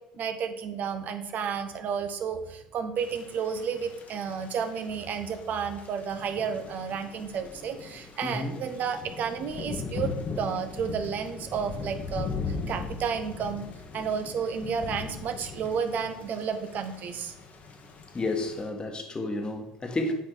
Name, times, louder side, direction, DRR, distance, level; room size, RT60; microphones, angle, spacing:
voice 1, 0.2-13.7 13.9-17.3, right 6 dB, 50° right, 8 dB, 0.9 m, -32 dB
Thunder / Rain, 3.0-18.6, left 4 dB, 45° left, 1.3 m, -39 dB
voice 2, 8.2-8.6 18.1-20.1, left 2 dB, 25° left, 4 dB, 1.4 m, -31 dB
9.5 x 4.2 x 4.0 m, 0.88 s
hypercardioid pair, 70°, 4 cm